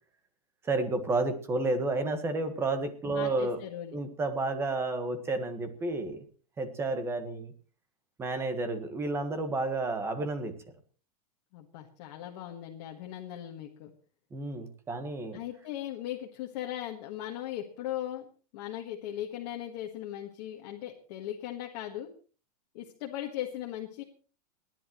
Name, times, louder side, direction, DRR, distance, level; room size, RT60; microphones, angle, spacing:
voice 1, 0.6-3.6 3.9-6.2 6.6-7.5 8.2-10.5 14.3-15.4, right 2 dB, 10° right, 8 dB, 1.5 m, -31 dB
voice 2, 3.0-4.0 11.5-13.9 15.3-22.1 22.7-24.0, left 12 dB, 45° left, 1 dB, 1.7 m, -38 dB
30.0 x 10.5 x 3.1 m, 0.40 s
supercardioid pair, 165°, 20 cm